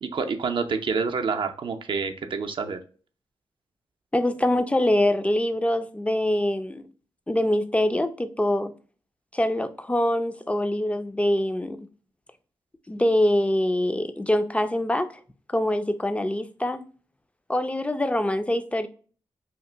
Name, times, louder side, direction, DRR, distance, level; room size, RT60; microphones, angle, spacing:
voice 1, 0.0-2.8, right 5 dB, 60° right, 0.5 m, -28 dB
voice 2, 4.1-6.9 7.3-8.7 9.3-11.9 12.9-15.2 15.5-16.8 17.5-18.9, left 1 dB, 15° left, 0.4 m, -24 dB
2.9 x 2.4 x 3.3 m
cardioid pair, 55°, 10 cm